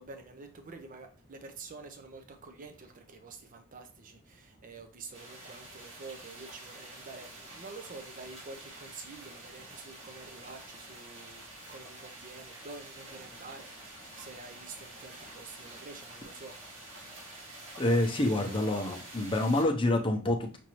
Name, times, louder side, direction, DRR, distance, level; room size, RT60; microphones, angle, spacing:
voice 1, 0.0-17.0, right 3 dB, 40° right, 6 dB, 0.5 m, -48 dB
sound 1, 5.1-19.6, right 1 dB, 60° right, 1.7 m, -48 dB
voice 2, 17.8-20.6, left 1 dB, 25° left, 3 dB, 0.7 m, -27 dB
6.0 x 2.6 x 2.9 m, 0.36 s
head